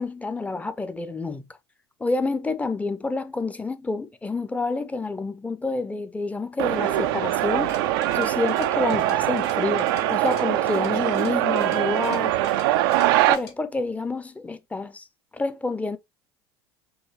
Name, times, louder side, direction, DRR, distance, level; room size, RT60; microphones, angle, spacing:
voice 1, 0.0-1.4 2.0-7.7 8.1-12.3 13.3-15.1 15.3-16.0, left 3 dB, 10° left, 0.7 m, -28 dB
sound 1, 6.6-13.4, right 14 dB, 60° right, 0.4 m, -23 dB
sound 2, 7.6-13.5, left 5 dB, 65° left, 1.8 m, -49 dB
4.8 x 3.1 x 3.1 m
figure-of-eight pair, 70°, 14 cm